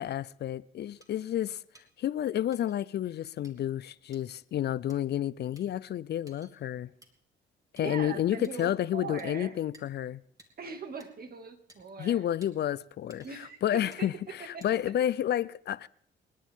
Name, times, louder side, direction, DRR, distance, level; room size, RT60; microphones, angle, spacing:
voice 1, 0.0-1.6 2.0-6.9 7.7-10.2 12.0-15.9, left 11 dB, 55° left, 0.5 m, -30 dB
sound 1, 1.0-1.1 1.7-1.9 2.5-2.8 3.4-3.5 4.1-4.2 4.9-5.0 5.6-5.7 6.3-6.5 7.0-7.1 7.8-7.9 8.4-8.7 9.2-9.3 9.7-9.9 10.4-10.5 11.0-11.1 11.7-11.8 12.4-12.5 13.1-13.5 13.9-14.1 14.6-15.0, right 1 dB, 15° right, 2.9 m, -57 dB
voice 2, 7.8-9.6 10.6-12.2 13.2-14.1 14.4-14.7, right 4 dB, 50° right, 2.2 m, -41 dB
28.5 x 10.0 x 3.7 m
cardioid pair, 90°, 20 cm